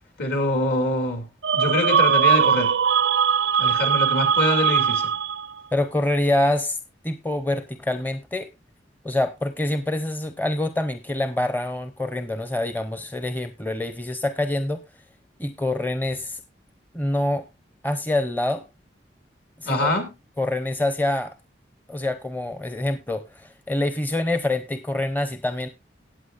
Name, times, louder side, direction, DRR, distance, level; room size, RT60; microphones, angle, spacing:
voice 1, 0.2-1.3 1.5-2.7 3.6-5.1 19.6-20.1, left 1 dB, 60° left, 2.6 m, -24 dB
sound 1, 1.4-5.6, right 7 dB, 90° right, 0.5 m, -20 dB
voice 2, 5.7-6.8 7.0-8.5 9.0-14.8 15.4-16.4 16.9-17.5 17.8-18.7 19.6-19.9 20.4-21.3 21.9-25.7, left 1 dB, 10° left, 0.7 m, -26 dB
18.0 x 8.3 x 2.5 m
head